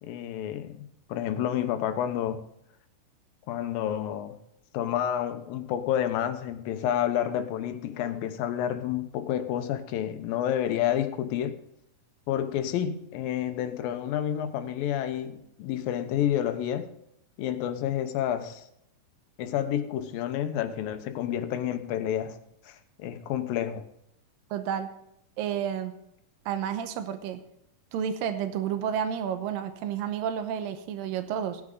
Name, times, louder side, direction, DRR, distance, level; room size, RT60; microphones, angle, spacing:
voice 1, 0.0-2.4 3.5-4.4 4.7-11.6 12.3-16.9 17.4-18.7 19.4-22.4 22.7-23.9, left 10 dB, 85° left, 9 dB, 2.8 m, -29 dB
voice 2, 24.5-24.9 25.4-25.9 26.5-27.4 27.9-31.6, right 8 dB, 85° right, 9 dB, 2.6 m, -31 dB
16.5 x 9.7 x 3.9 m, 0.77 s
omnidirectional pair, 4.0 m